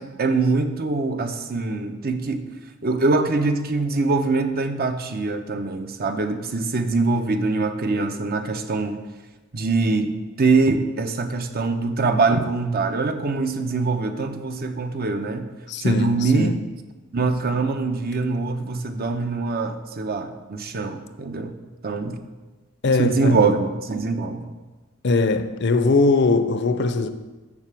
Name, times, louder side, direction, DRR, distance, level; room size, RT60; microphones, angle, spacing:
voice 1, 0.0-2.4 2.8-9.0 9.5-10.1 10.4-15.5 15.8-16.6 17.1-21.5 21.8-22.2 23.0-24.5, right 3 dB, 50° right, 7 dB, 0.8 m, -23 dB
voice 2, 15.7-16.6 22.8-23.4 25.0-27.1, left 3 dB, 60° left, 10 dB, 0.7 m, -20 dB
7.3 x 6.6 x 7.6 m, 1.2 s
head